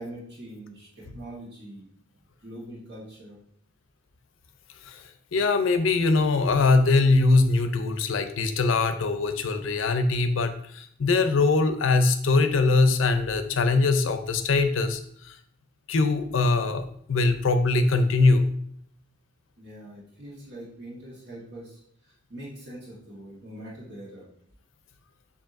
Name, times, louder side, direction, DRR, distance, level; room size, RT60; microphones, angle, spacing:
voice 1, 0.0-1.9 2.4-3.4 19.6-24.2, right 1 dB, 60° right, -5 dB, 1.4 m, -43 dB
voice 2, 5.3-15.4 15.9-18.5, left 3 dB, 75° left, 8 dB, 0.5 m, -22 dB
6.9 x 2.7 x 2.5 m, 0.65 s
head